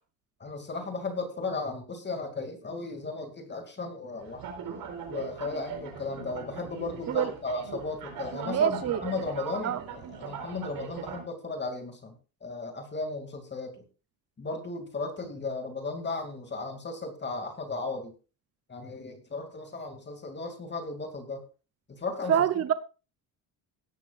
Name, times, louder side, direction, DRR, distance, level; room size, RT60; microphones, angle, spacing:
voice 1, 0.4-4.5 5.1-12.1 12.4-13.8 14.4-18.1 18.7-21.4 21.9-22.3, left 3 dB, 30° left, 2.5 m, -35 dB
sound 1, 4.2-11.2, right 6 dB, 65° right, 4.3 m, -40 dB
voice 2, 8.5-9.0 9.6-9.8 22.3-22.7, right 9 dB, 40° right, 0.8 m, -25 dB
17.0 x 11.0 x 2.5 m
cardioid pair, 110°, 37 cm